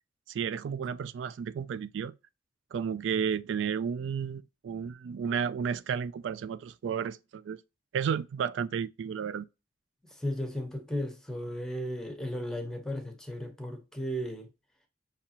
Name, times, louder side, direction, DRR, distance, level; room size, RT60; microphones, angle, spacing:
voice 1, 0.3-2.2 2.7-7.6 7.9-9.5, right 7 dB, 85° right, 0.3 m, -32 dB
voice 2, 10.2-14.5, equal, 5° left, 0.9 m, -35 dB
5.9 x 2.9 x 2.8 m
head